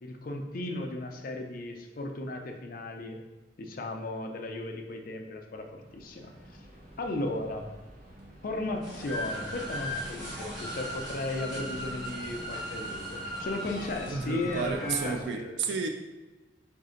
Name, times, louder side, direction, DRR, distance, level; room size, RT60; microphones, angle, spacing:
voice 1, 0.0-3.2 3.6-6.3 7.0-7.6 8.4-15.8, left 2 dB, 55° left, 3 dB, 0.5 m, -36 dB
sound 1, 5.4-15.2, right 1 dB, 55° right, 0.8 m, -49 dB
sound 2, 8.8-14.1, equal, 25° right, 1.2 m, -45 dB
sound 3, 9.1-15.1, equal, ahead, 0.9 m, -38 dB
voice 2, 14.1-15.9, right 5 dB, 75° right, 5 dB, 0.3 m, -32 dB
4.1 x 2.7 x 3.8 m, 1.1 s
head